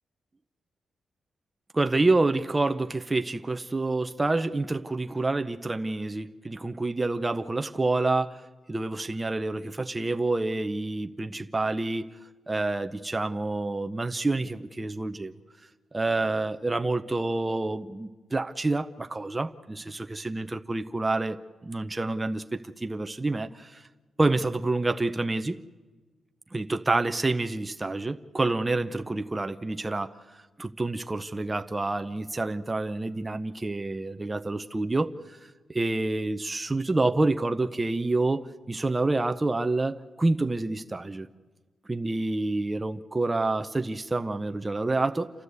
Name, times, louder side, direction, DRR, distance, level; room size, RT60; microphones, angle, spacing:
voice 1, 1.7-8.4 8.7-12.1 12.5-15.3 15.9-21.4 21.6-23.9 24.2-25.6 26.5-35.4 35.7-41.3 41.9-45.3, right 2 dB, 20° right, 8 dB, 0.7 m, -28 dB
28.5 x 13.0 x 8.2 m, 1.3 s
cardioid pair, 115°, 0 cm